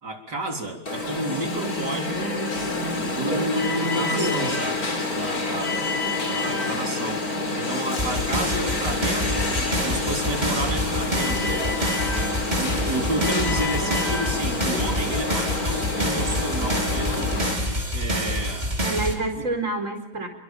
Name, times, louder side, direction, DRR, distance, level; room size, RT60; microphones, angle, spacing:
voice 1, 0.0-2.4 3.0-5.9 6.3-7.2 7.6-11.6 12.5-17.3 17.9-18.7 19.3-19.5, right 1 dB, 55° right, 4 dB, 4.4 m, -31 dB
Alarm, 0.9-17.5, left 2 dB, 45° left, 4.2 m, -27 dB
voice 2, 4.1-4.5 13.1-13.7 18.8-20.3, right 2 dB, 40° right, 6 dB, 4.9 m, -29 dB
sound 1, 8.0-19.1, equal, 20° right, 5.0 m, -27 dB
29.5 x 24.0 x 7.6 m, 0.78 s
omnidirectional pair, 2.2 m